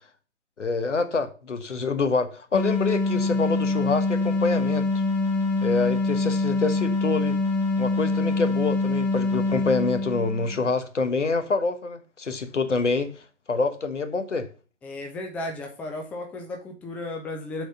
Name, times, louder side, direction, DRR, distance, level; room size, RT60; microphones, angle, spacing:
voice 1, 0.6-5.0 5.6-7.4 7.8-13.1 13.5-14.5, left 4 dB, 75° left, 1.3 m, -26 dB
sound 1, 2.5-10.7, left 3 dB, 35° left, 1.5 m, -25 dB
voice 2, 14.8-17.7, left 2 dB, 5° left, 0.5 m, -34 dB
6.6 x 4.2 x 6.6 m
figure-of-eight pair, 125°, 36 cm